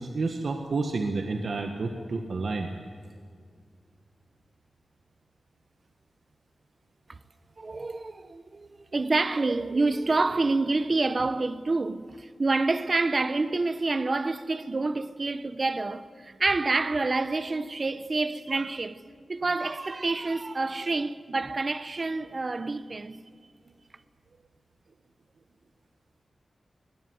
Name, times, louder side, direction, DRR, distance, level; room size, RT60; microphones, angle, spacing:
voice 1, 0.0-2.7, right 3 dB, 70° right, 1.5 m, -30 dB
voice 2, 7.6-19.0 19.3-23.2, right 3 dB, 40° right, 1.0 m, -28 dB
21.0 x 18.0 x 9.6 m
wide cardioid pair, 90°, 0 cm